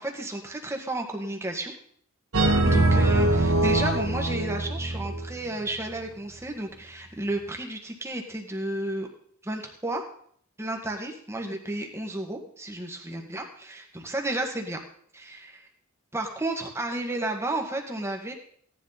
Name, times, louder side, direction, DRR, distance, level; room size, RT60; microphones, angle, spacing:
voice 1, 0.0-1.7 2.6-9.1 9.4-10.1 10.6-14.8 15.1-15.7 16.1-18.3, right 1 dB, 10° right, 2 dB, 1.8 m, -32 dB
sound 1, 2.3-5.3, right 2 dB, 80° right, 1.7 m, -22 dB
17.0 x 10.5 x 4.2 m, 0.62 s
head